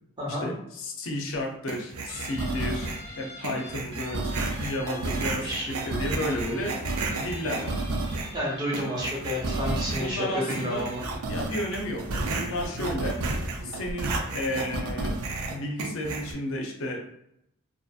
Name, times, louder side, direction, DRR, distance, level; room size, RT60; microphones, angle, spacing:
voice 1, 0.3-6.8 7.2-7.8 9.9-10.9 11.3-13.2 13.6-15.2 15.5-17.1, left 1 dB, 65° left, 1 dB, 0.5 m, -33 dB
sound 1, 1.7-3.1 3.4-8.4 8.7-10.2 10.5-16.3, right 2 dB, 90° right, 0.5 m, -31 dB
Guitar, 2.1-11.3, right 1 dB, 55° right, 1.1 m, -44 dB
voice 2, 8.3-11.0, equal, 20° right, -4 dB, 0.8 m, -30 dB
2.6 x 2.6 x 2.3 m, 0.79 s
head